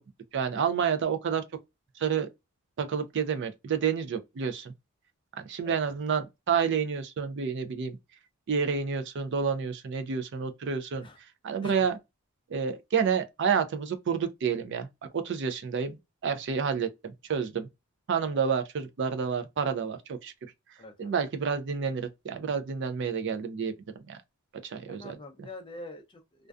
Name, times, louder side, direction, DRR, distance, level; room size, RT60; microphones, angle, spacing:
voice 1, 0.3-1.4 2.0-2.3 2.8-4.7 5.3-8.0 8.5-11.1 11.4-12.0 12.5-14.9 15.1-16.0 16.2-17.7 18.1-20.3 21.0-23.7 24.1-24.2 24.6-25.1, right 6 dB, 50° right, 0.4 m, -29 dB
voice 2, 5.6-6.0 11.0-11.2 11.6-11.9 20.8-21.1 24.9-26.5, left 2 dB, 25° left, 0.4 m, -45 dB
2.5 x 2.2 x 2.2 m
head